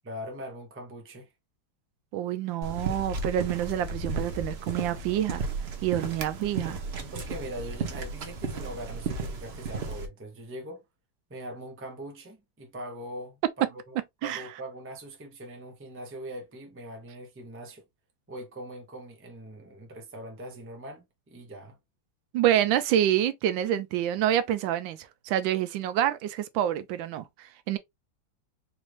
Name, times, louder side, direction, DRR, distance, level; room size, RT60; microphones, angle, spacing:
voice 1, 0.0-1.3 7.0-10.8 11.3-13.4 13.9-14.0 14.2-17.8 18.3-21.8, right 1 dB, 10° right, 0.5 m, -41 dB
voice 2, 2.1-5.4 5.8-6.8 14.2-14.4 22.3-27.8, right 11 dB, 80° right, 1.3 m, -27 dB
sound 1, 2.6-10.1, right 3 dB, 55° right, 0.7 m, -34 dB
4.3 x 2.5 x 3.1 m
omnidirectional pair, 2.1 m